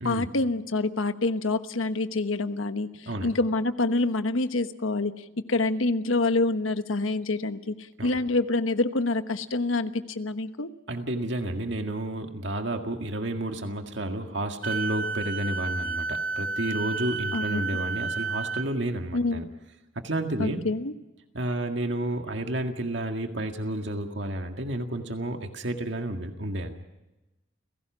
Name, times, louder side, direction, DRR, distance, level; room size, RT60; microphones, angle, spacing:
voice 1, 0.0-7.8 8.0-10.7 17.3-17.6 19.1-19.5 20.4-20.9, left 2 dB, 80° left, 10 dB, 1.2 m, -27 dB
voice 2, 10.9-19.4 20.0-20.6 21.3-26.7, right 1 dB, 60° right, 5 dB, 1.9 m, -31 dB
Wind instrument woodwind instrument, 14.6-18.7, right 3 dB, 45° right, 1.1 m, -31 dB
30.0 x 17.0 x 6.2 m, 1.0 s
head